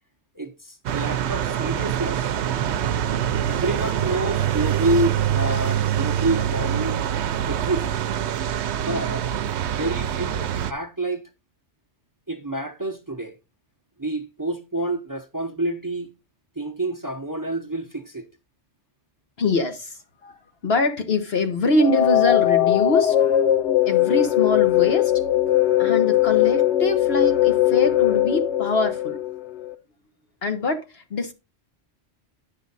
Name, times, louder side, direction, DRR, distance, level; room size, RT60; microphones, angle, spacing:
voice 1, 0.3-2.2 3.5-7.0 7.5-7.9 8.8-9.3 9.7-11.2 12.3-13.3 14.0-16.1 16.6-18.2, right 2 dB, 20° right, 0.7 m, -28 dB
sound 1, 0.9-10.7, right 10 dB, 80° right, 0.9 m, -25 dB
voice 2, 19.4-20.4 20.6-23.1 23.9-25.1 25.8-29.2 30.4-31.3, left 3 dB, 65° left, 1.3 m, -24 dB
sound 2, 21.8-29.7, left 13 dB, 85° left, 1.0 m, -20 dB
9.8 x 6.3 x 4.0 m
omnidirectional pair, 1.1 m